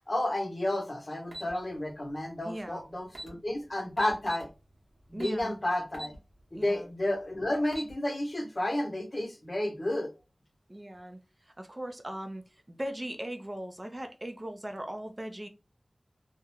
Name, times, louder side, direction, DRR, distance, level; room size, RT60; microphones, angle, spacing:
voice 1, 0.1-4.5 5.1-6.1 6.5-10.1, left 1 dB, 50° left, 0.7 m, -31 dB
sound 1, 1.3-1.5 2.7-2.8 3.1-3.3 4.0-4.5 5.2-5.4 5.9-6.2 6.6-6.7 7.5-7.9, right 1 dB, 90° right, 0.9 m, -41 dB
voice 2, 2.4-2.8 5.1-5.6 6.5-6.9 10.7-15.5, right 1 dB, 35° right, 0.4 m, -39 dB
2.4 x 2.1 x 2.9 m
wide cardioid pair, 45°, 0 cm